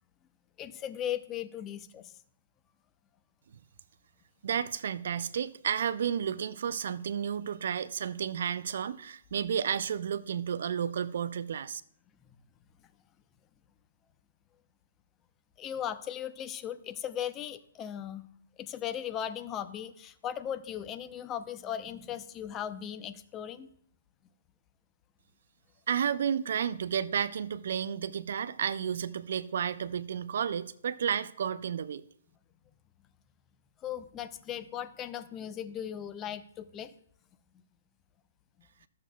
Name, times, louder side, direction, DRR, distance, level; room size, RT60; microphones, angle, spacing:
voice 1, 0.6-2.1 15.6-18.3 18.6-23.7 33.8-36.9, left 10 dB, 20° left, 0.5 m, -37 dB
voice 2, 4.4-11.8 25.9-32.0, right 8 dB, 60° right, 0.4 m, -32 dB
12.5 x 7.4 x 2.3 m
figure-of-eight pair, 125°, 0 cm